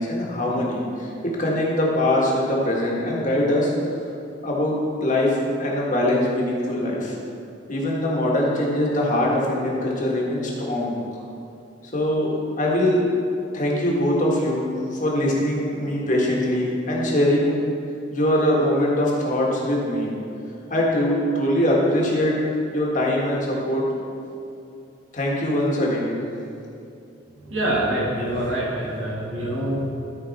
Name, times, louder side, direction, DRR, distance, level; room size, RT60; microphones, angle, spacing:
voice 1, 0.0-3.7 4.4-7.2 7.7-11.2 11.9-13.0 13.5-17.6 18.1-20.1 20.7-22.4 22.7-23.9 25.1-26.2, left 1 dB, 40° left, -3 dB, 1.6 m, -22 dB
voice 2, 27.5-30.0, right 1 dB, 75° right, -5 dB, 2.3 m, -25 dB
13.0 x 5.1 x 4.2 m, 2.6 s
head